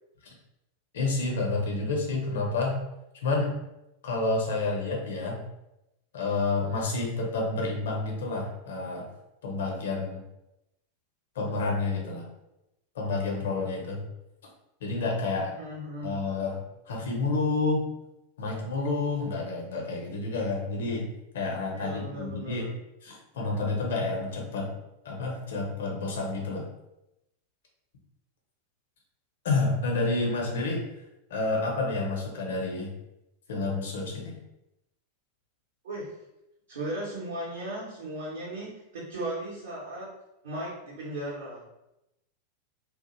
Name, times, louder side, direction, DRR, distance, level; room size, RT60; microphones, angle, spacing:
voice 1, 0.9-2.8 3.2-3.6 4.0-5.4 6.1-9.1 9.4-10.2 11.4-12.3 13.0-14.0 14.8-15.5 16.0-16.5 16.9-17.9 18.4-21.1 21.3-22.7 23.0-24.7 25.0-26.6 29.4-30.8 31.3-32.9 33.5-34.4, left 3 dB, 60° left, -1 dB, 0.6 m, -29 dB
voice 2, 15.3-16.2 21.7-22.7 35.8-36.1 36.7-40.1 40.4-41.6, right 1 dB, 65° right, -7 dB, 0.7 m, -36 dB
2.3 x 2.0 x 2.9 m, 0.90 s
figure-of-eight pair, 90°, 0 cm